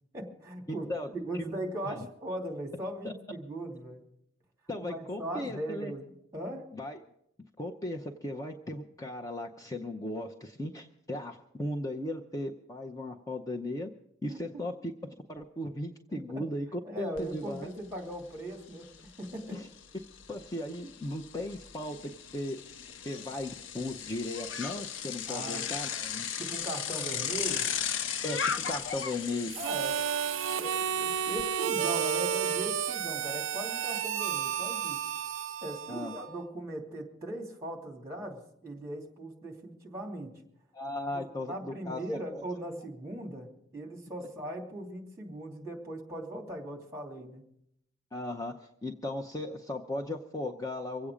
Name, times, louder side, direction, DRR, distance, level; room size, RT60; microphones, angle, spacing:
voice 1, 0.1-0.9 1.1-4.0 4.8-6.6 14.3-14.6 16.1-16.4 16.8-18.9 19.2-19.6 25.3-25.7 26.4-27.7 29.6-29.9 30.5-35.0 35.6-40.4 41.1-47.4, right 1 dB, 15° right, 1 dB, 2.7 m, -39 dB
voice 2, 0.7-1.1 1.8-2.1 3.0-3.1 4.7-5.9 6.7-7.0 7.6-13.9 14.2-17.7 19.5-19.7 20.3-22.6 23.0-26.3 28.2-29.6 35.9-36.1 40.7-42.0 42.3-42.4 44.2-44.3 48.1-51.1, left 1 dB, 20° left, 2 dB, 0.7 m, -37 dB
Bicycle, 17.2-17.3 17.6-31.4, left 7 dB, 80° left, 0.6 m, -37 dB
Harmonica, 29.5-36.4, right 8 dB, 90° right, 0.4 m, -32 dB
25.0 x 8.5 x 5.0 m, 0.75 s
head